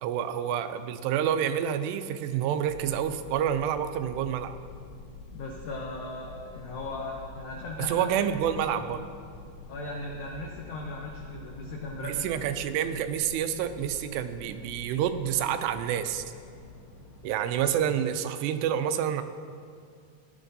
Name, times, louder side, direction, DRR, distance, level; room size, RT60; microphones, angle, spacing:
voice 1, 0.0-4.6 7.9-9.1 12.0-16.2 17.2-19.2, right 9 dB, 85° right, 9 dB, 2.7 m, -28 dB
sound 1, 2.6-17.8, left 3 dB, 70° left, 2.7 m, -47 dB
voice 2, 5.3-8.2 9.7-12.3, left 2 dB, 85° left, -1 dB, 1.7 m, -38 dB
16.0 x 9.9 x 2.7 m, 2.2 s
omnidirectional pair, 4.8 m